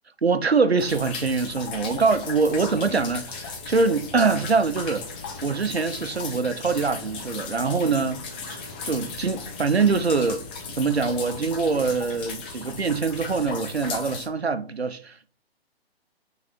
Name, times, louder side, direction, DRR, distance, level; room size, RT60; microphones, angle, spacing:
voice 1, 0.2-5.1 5.4-10.4 10.8-15.3, right 4 dB, 85° right, 0.7 m, -24 dB
sound 1, 0.8-14.3, left 4 dB, 10° left, 0.4 m, -36 dB
4.7 x 4.0 x 5.1 m
figure-of-eight pair, 130°, 31 cm